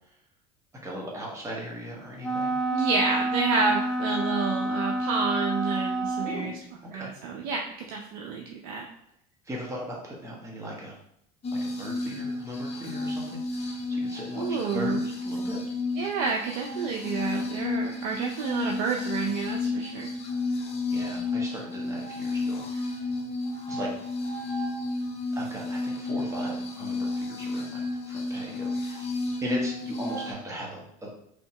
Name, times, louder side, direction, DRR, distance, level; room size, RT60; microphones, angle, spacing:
voice 1, 0.8-2.6 6.2-6.5 6.8-7.1 9.4-11.0 11.6-15.6 20.9-23.0 23.7-23.9 25.3-31.1, equal, 15° right, -3 dB, 1.1 m, -38 dB
Wind instrument woodwind instrument, 2.2-6.5, right 1 dB, ahead, 0.7 m, -28 dB
voice 2, 2.7-6.5 6.9-8.9 14.4-15.0 16.0-20.1, right 5 dB, 70° right, 1 dB, 0.5 m, -29 dB
sound 1, 11.4-30.3, left 3 dB, 30° left, 0.8 m, -32 dB
3.4 x 2.8 x 2.8 m, 0.73 s
supercardioid pair, 95°, 20 cm